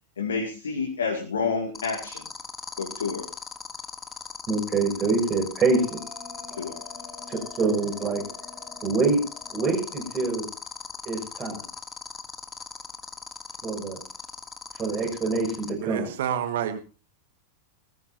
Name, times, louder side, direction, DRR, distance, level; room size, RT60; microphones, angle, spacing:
voice 1, 0.2-2.3 2.8-3.3 6.6-6.8, left 5 dB, 70° left, 2 dB, 2.3 m, -29 dB
sound 1, 1.7-15.7, left 5 dB, 15° left, 1.4 m, -38 dB
voice 2, 4.5-6.0 7.3-8.2 8.8-9.2 9.5-10.5 11.0-11.6 13.6-14.0 14.8-16.1, right 3 dB, 30° right, 3 dB, 6.4 m, -25 dB
Bell, 5.7-10.8, left 2 dB, 5° right, 4.5 m, -47 dB
voice 3, 15.8-16.8, right 9 dB, 55° right, 10 dB, 1.5 m, -28 dB
19.0 x 14.5 x 2.7 m, 0.32 s
figure-of-eight pair, 90°, 0 cm